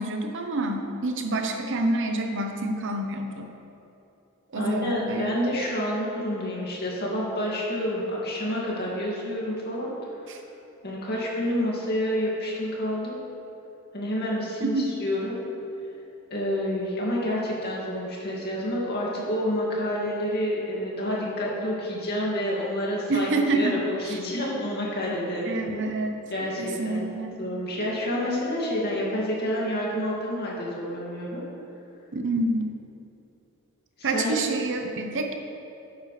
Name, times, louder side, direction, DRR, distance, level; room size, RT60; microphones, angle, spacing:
voice 1, 0.0-3.5 4.5-5.5 10.3-10.4 14.6-14.9 23.1-23.8 24.1-24.2 25.4-26.1 26.6-27.4 32.1-32.7 34.0-35.3, right 2 dB, 60° right, 4 dB, 0.8 m, -27 dB
voice 2, 4.5-9.9 10.8-13.2 13.9-15.4 16.3-25.9 26.3-31.4 34.0-34.3, equal, 50° left, -4 dB, 2.1 m, -29 dB
11.0 x 9.0 x 3.3 m, 2.9 s
head